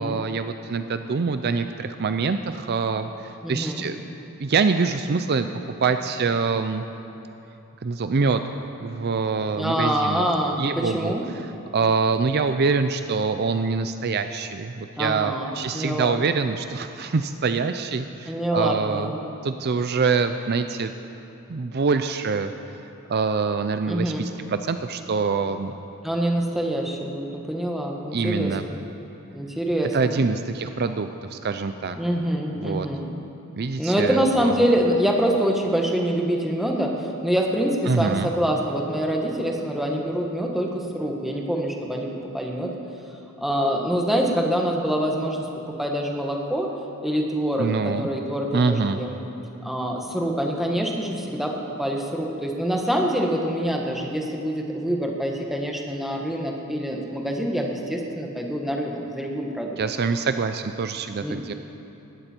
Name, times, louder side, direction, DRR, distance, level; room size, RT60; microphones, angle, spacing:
voice 1, 0.0-4.0 4.4-5.5 5.8-6.8 7.8-8.4 8.8-10.3 10.6-11.1 11.7-19.1 19.4-20.9 21.5-22.5 23.1-25.7 28.1-28.6 29.9-32.0 32.6-32.9 33.6-34.6 37.9-38.3 47.6-48.1 48.5-49.0 59.8-61.5, right 4 dB, 45° right, 9 dB, 0.5 m, -25 dB
voice 2, 3.4-3.8 9.6-11.2 15.0-16.2 18.3-19.3 23.9-24.2 26.0-28.8 29.3-30.2 32.0-33.1 33.8-42.7 43.4-46.7 47.0-49.1 49.6-51.5 51.8-59.8 61.2-61.4, equal, ahead, 0 dB, 1.4 m, -25 dB
19.5 x 14.5 x 4.5 m, 2.9 s
head